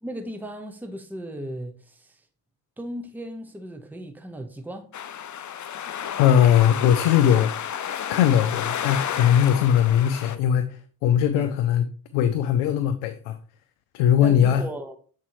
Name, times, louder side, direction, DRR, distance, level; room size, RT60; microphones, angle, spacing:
voice 1, 0.0-2.3 2.8-4.9 11.4-11.5 14.2-15.0, right 1 dB, 5° right, 1.0 m, -36 dB
sound 1, 4.9-10.4, left 9 dB, 40° left, 0.6 m, -31 dB
voice 2, 6.2-7.5 8.1-11.9 12.1-13.4 13.9-14.6, left 9 dB, 85° left, 0.5 m, -20 dB
7.3 x 4.3 x 3.1 m
hypercardioid pair, 45°, 45 cm